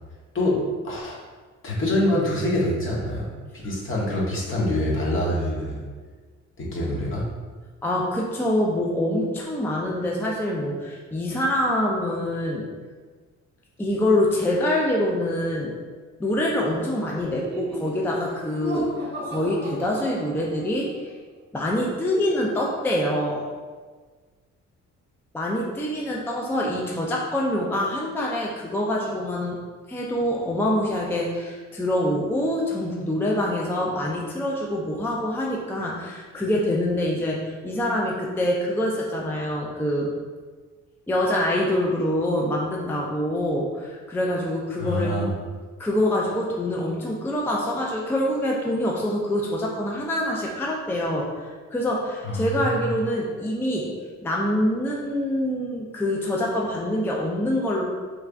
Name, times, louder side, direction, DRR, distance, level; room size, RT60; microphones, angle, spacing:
voice 1, 0.8-1.2 1.6-5.8 6.6-7.2 44.8-45.3 52.2-52.9, left 1 dB, 40° left, -4 dB, 1.1 m, -25 dB
voice 2, 7.8-12.7 13.8-15.7 16.2-21.1 21.5-23.5 25.3-29.6 29.9-40.1 41.1-45.1 45.8-53.9 54.2-57.8, left 1 dB, 5° left, -3 dB, 0.4 m, -25 dB
Laughter, 17.2-20.9, right 1 dB, 35° right, 0.8 m, -35 dB
3.4 x 3.2 x 2.4 m, 1.4 s
cardioid pair, 90°, 30 cm